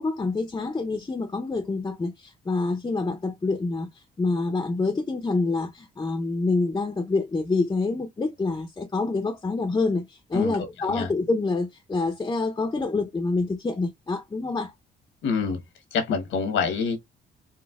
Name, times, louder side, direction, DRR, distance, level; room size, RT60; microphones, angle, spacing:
voice 1, 0.0-14.7, left 3 dB, 20° left, 0.5 m, -27 dB
voice 2, 15.2-15.6 15.9-17.0, left 5 dB, 80° left, 1.0 m, -26 dB
4.0 x 2.1 x 2.3 m
cardioid pair, 90°, 20 cm